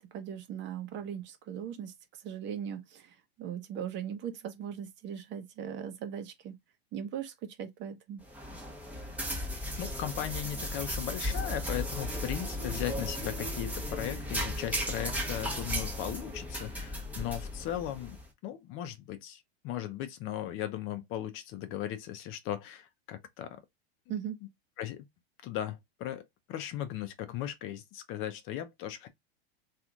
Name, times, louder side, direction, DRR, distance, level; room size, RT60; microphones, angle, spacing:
voice 1, 0.0-1.9 2.2-6.5 6.9-8.2 24.1-24.4, right 9 dB, 35° right, 1.0 m, -39 dB
sound 1, 8.2-18.2, equal, 5° right, 1.0 m, -35 dB
voice 2, 9.8-18.2 18.4-23.6 24.8-25.1 25.4-29.1, left 11 dB, 40° left, 0.7 m, -37 dB
3.2 x 3.0 x 2.4 m
hypercardioid pair, 115°, 31 cm